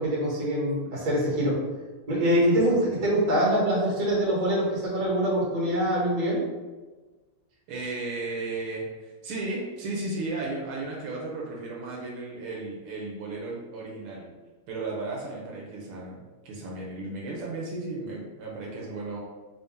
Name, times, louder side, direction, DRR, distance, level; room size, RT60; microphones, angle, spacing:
voice 1, 0.0-1.6 2.1-6.4, equal, 50° right, -4 dB, 1.6 m, -24 dB
voice 2, 2.5-3.1 7.7-14.3 14.7-19.2, right 2 dB, 80° right, -3 dB, 1.6 m, -35 dB
3.7 x 2.7 x 3.5 m, 1.3 s
omnidirectional pair, 2.4 m